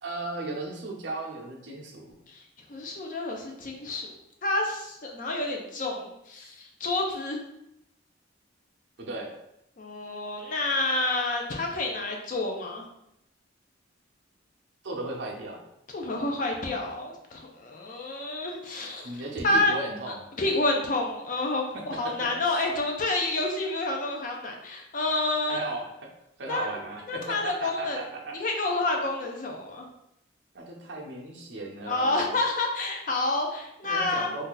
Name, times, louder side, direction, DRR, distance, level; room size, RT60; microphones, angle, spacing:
voice 1, 0.0-2.1 9.0-9.3 14.8-15.6 19.0-20.3 21.7-22.3 25.5-26.1 26.4-28.3 30.5-32.4 33.8-34.5, right 2 dB, 65° right, 0 dB, 0.7 m, -36 dB
voice 2, 2.7-4.1 4.4-7.4 9.8-12.8 15.9-19.1 19.4-19.7 20.4-25.6 26.5-26.7 27.1-28.0 28.3-29.9 31.9-34.3, left 2 dB, 45° left, 1 dB, 0.5 m, -29 dB
2.7 x 2.4 x 3.8 m, 0.82 s
head